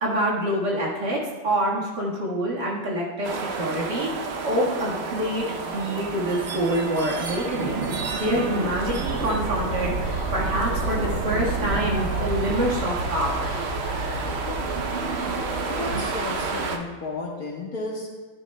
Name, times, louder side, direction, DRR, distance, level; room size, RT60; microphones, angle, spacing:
voice 1, 0.0-1.2 1.4-4.1 4.4-7.8 8.2-9.9 10.3-13.5, right 1 dB, 60° right, -4 dB, 2.3 m, -26 dB
sound 1, 3.2-16.8, right 3 dB, 80° right, 0.5 m, -29 dB
sound 2, 9.1-15.9, left 2 dB, 35° left, 1.9 m, -40 dB
sound 3, 12.1-14.9, equal, 85° left, 2.4 m, -44 dB
voice 2, 15.7-18.1, left 3 dB, 50° left, -1 dB, 1.6 m, -33 dB
12.5 x 11.0 x 2.2 m, 1.4 s
omnidirectional pair, 2.1 m